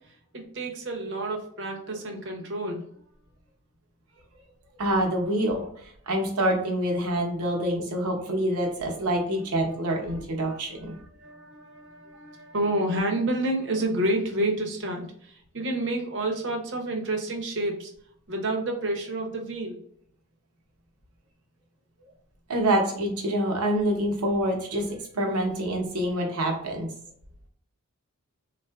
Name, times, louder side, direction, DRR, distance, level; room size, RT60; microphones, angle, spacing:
voice 1, 0.1-2.8 10.0-17.9 18.3-19.8, right 1 dB, 55° right, 2 dB, 0.7 m, -30 dB
voice 2, 4.8-5.6 6.1-10.9 22.5-26.9, right 1 dB, 90° right, 1 dB, 0.8 m, -26 dB
3.5 x 2.4 x 2.3 m, 0.65 s
head